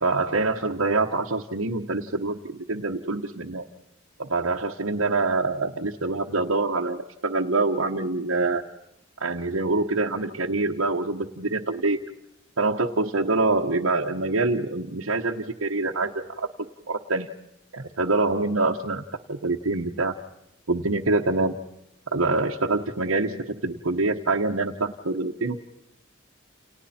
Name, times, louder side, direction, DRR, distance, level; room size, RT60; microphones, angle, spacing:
voice 1, 0.0-3.7 4.2-8.6 9.2-12.0 12.6-16.5 16.9-17.3 17.7-20.1 20.7-21.6 22.1-25.6, right 3 dB, 80° right, -2 dB, 1.2 m, -25 dB
30.0 x 29.0 x 4.4 m, 0.86 s
head